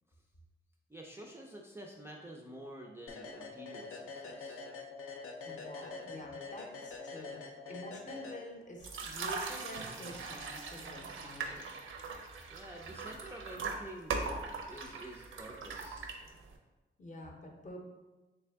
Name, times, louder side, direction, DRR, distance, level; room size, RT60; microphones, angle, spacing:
voice 1, 0.9-4.6 12.5-14.2 14.7-16.1, right 1 dB, 10° right, -2 dB, 0.3 m, -49 dB
sound 1, 3.1-8.9, left 4 dB, 90° left, 0.5 m, -45 dB
voice 2, 5.4-7.4 7.7-11.8 17.0-17.9, left 1 dB, 35° left, 1 dB, 0.6 m, -48 dB
sound 2, 8.8-16.6, right 4 dB, 70° right, 0.5 m, -40 dB
3.4 x 3.2 x 3.3 m, 1.1 s
wide cardioid pair, 155°, 21 cm